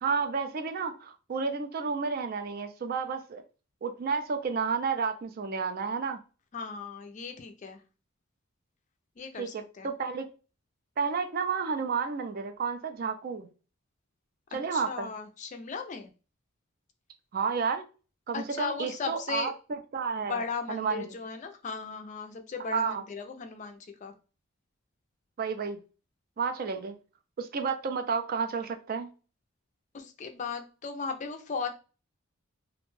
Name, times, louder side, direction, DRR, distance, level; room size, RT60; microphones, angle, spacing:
voice 1, 0.0-3.4 3.8-6.2 9.4-10.3 11.0-13.5 14.5-15.1 17.3-17.8 18.3-19.5 19.9-20.4 20.7-21.0 22.7-23.0 25.4-25.8 26.4-26.9 27.4-29.1, right 5 dB, 45° right, 0.3 m, -31 dB
voice 2, 6.5-7.8 9.2-9.9 14.7-16.1 18.3-19.5 20.2-24.1 29.9-31.7, left 5 dB, 35° left, 0.4 m, -37 dB
2.5 x 2.1 x 3.1 m
head